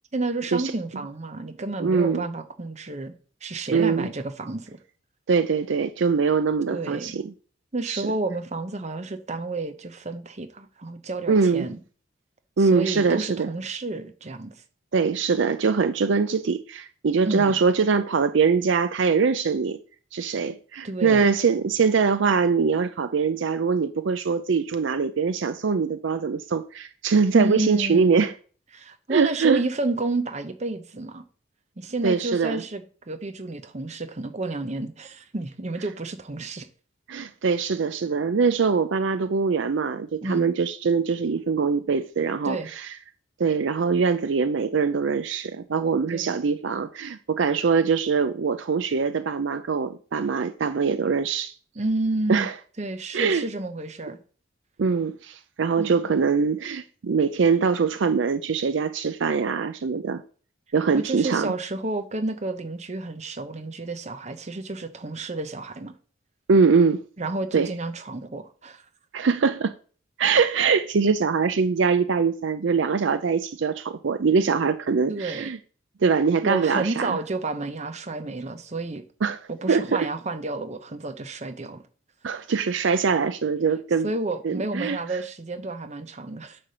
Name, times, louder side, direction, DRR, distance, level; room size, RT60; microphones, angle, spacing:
voice 1, 0.1-3.1 3.4-4.8 6.7-7.1 7.7-11.8 12.6-14.5 17.2-17.6 20.8-21.3 27.3-28.3 28.7-31.2 31.8-36.7 40.2-40.5 42.4-42.7 46.1-46.3 51.8-52.5 52.8-54.2 55.8-56.1 60.9-65.9 67.2-68.8 75.1-75.5 76.4-79.0 79.5-81.8 84.0-86.6, right 2 dB, 35° right, 0.8 m, -30 dB
voice 2, 1.8-2.2 3.7-4.1 5.3-7.3 7.9-8.1 11.3-11.7 12.6-13.5 14.9-19.8 20.1-28.3 29.1-29.6 32.0-32.6 37.1-43.0 43.4-51.5 52.3-52.5 53.1-53.4 54.8-60.2 60.7-61.5 66.5-67.0 67.5-67.7 69.1-69.7 70.2-75.6 76.0-77.2 79.2-79.4 79.7-80.1 82.2-84.1 84.4-85.0, right 5 dB, 65° right, 0.5 m, -23 dB
9.7 x 3.3 x 6.7 m
head